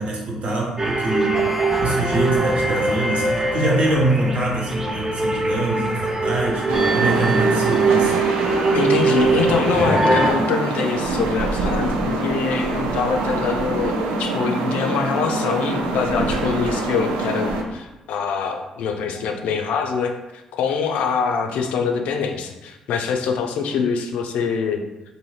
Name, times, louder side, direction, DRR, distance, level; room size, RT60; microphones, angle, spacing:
voice 1, 0.0-1.5 1.8-8.2, right 2 dB, 60° right, -3 dB, 0.9 m, -24 dB
sound 1, 0.8-10.3, right 3 dB, 25° right, 0.6 m, -22 dB
sound 2, 6.7-17.6, right 2 dB, 85° right, 0.3 m, -24 dB
voice 2, 8.7-24.8, left 6 dB, 70° left, 4 dB, 0.3 m, -24 dB
2.7 x 2.6 x 3.1 m, 1.0 s
hypercardioid pair, 50°, 2 cm